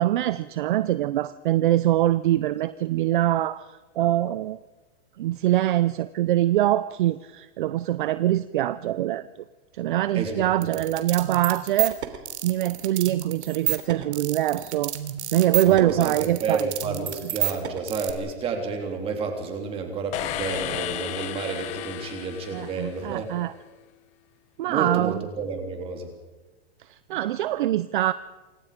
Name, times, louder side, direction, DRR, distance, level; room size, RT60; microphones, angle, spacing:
voice 1, 0.0-3.7 4.0-4.6 5.2-9.3 9.7-12.0 12.4-14.9 15.3-16.7 22.5-23.5 24.6-25.2 26.9-28.1, right 14 dB, 50° right, 15 dB, 0.7 m, -23 dB
voice 2, 10.1-10.7 15.7-23.3 24.7-26.1, right 4 dB, 15° right, 3 dB, 3.5 m, -30 dB
sound 1, 10.6-18.1, right 12 dB, 85° right, 3.4 m, -30 dB
sound 2, 20.1-23.3, left 13 dB, 20° left, 0.9 m, -33 dB
28.0 x 25.0 x 5.2 m, 1.2 s
supercardioid pair, 175°, 33 cm